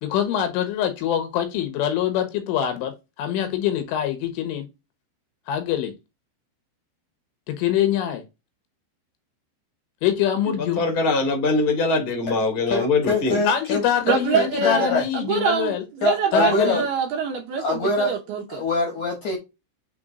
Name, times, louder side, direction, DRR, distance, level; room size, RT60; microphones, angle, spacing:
voice 1, 0.0-4.7 5.5-5.9 7.5-8.2 10.0-10.8 13.5-15.8 16.3-16.9, left 9 dB, 80° left, 3.6 m, -24 dB
voice 2, 10.7-13.4, left 3 dB, 25° left, 1.1 m, -22 dB
voice 3, 12.7-15.0 16.0-16.8 17.6-18.1 18.5-19.4, left 3 dB, 60° left, 2.2 m, -24 dB
voice 4, 14.0-18.6, right 7 dB, 70° right, 2.5 m, -25 dB
7.6 x 3.5 x 3.8 m
omnidirectional pair, 5.5 m